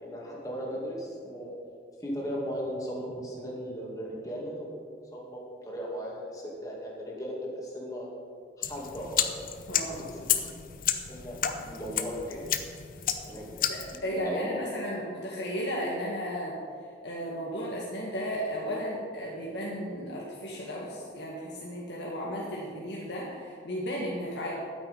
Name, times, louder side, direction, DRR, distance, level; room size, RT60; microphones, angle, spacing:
voice 1, 0.0-1.5 2.0-8.1 8.6-9.5 10.0-10.2 11.1-12.4 13.2-13.5 13.9-14.7, equal, 20° left, -3 dB, 2.3 m, -37 dB
sound 1, 8.6-14.0, left 9 dB, 50° left, 0.7 m, -32 dB
voice 2, 9.7-10.1 13.7-16.6 17.0-24.5, equal, 80° left, -5 dB, 1.8 m, -34 dB
12.0 x 8.7 x 5.4 m, 2.2 s
head